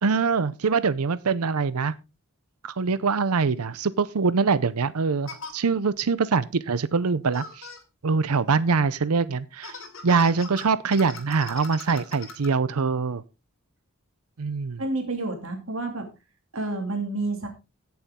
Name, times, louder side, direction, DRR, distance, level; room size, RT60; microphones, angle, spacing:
voice 1, 0.0-1.9 2.6-7.7 8.0-9.8 10.0-13.2 14.4-14.8, right 5 dB, 85° right, 0.6 m, -24 dB
sound 1, 3.8-3.9 5.3-5.5 7.3-7.8 9.6-12.5, left 4 dB, 60° left, 3.3 m, -40 dB
voice 2, 14.8-16.1 16.5-17.5, right 2 dB, 60° right, 2.8 m, -29 dB
17.5 x 7.1 x 3.7 m
head